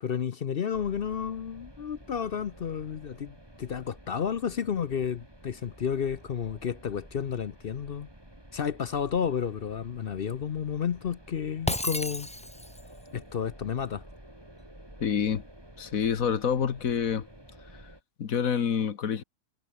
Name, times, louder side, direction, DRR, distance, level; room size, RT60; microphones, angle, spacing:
voice 1, 0.0-8.1 8.5-12.3 13.1-14.0, left 7 dB, 50° left, 0.7 m, -31 dB
sound 1, 0.7-18.0, right 1 dB, 15° right, 5.8 m, -51 dB
Shatter, 11.7-12.9, left 1 dB, 10° left, 0.3 m, -32 dB
voice 2, 15.0-15.4 15.8-17.3 18.2-19.2, left 7 dB, 65° left, 1.6 m, -27 dB
omnidirectional pair, 1.6 m